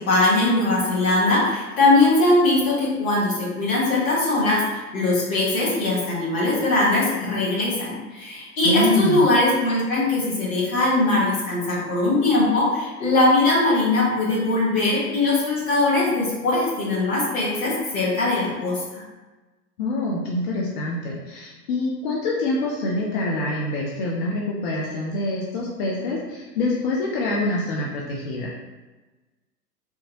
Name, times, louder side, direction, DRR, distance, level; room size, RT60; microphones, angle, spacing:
voice 1, 0.0-19.0, left 2 dB, 55° left, -5 dB, 1.4 m, -21 dB
voice 2, 8.6-9.3 19.8-28.5, left 2 dB, 35° left, -3 dB, 0.4 m, -25 dB
3.4 x 2.6 x 2.8 m, 1.2 s
figure-of-eight pair, 90°, 48 cm